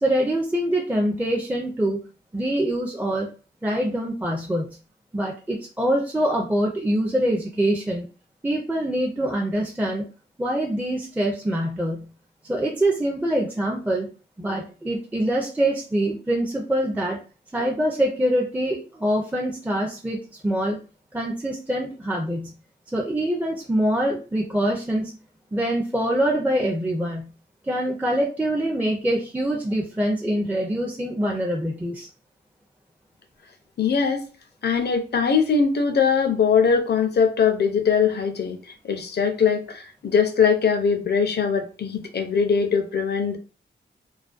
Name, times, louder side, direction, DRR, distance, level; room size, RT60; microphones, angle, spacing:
voice 1, 0.0-2.0 2.3-3.3 3.6-4.8 5.1-8.1 8.4-10.0 10.4-12.1 12.5-14.1 14.4-17.2 17.5-20.2 20.4-20.8 21.1-22.5 22.9-25.2 25.5-27.3 27.7-32.1, right 1 dB, 10° right, -1 dB, 0.5 m, -24 dB
voice 2, 33.8-34.3 34.6-38.6 38.9-43.4, left 6 dB, 55° left, 7 dB, 0.5 m, -21 dB
2.4 x 2.2 x 2.4 m, 0.36 s
cardioid pair, 75°, 20 cm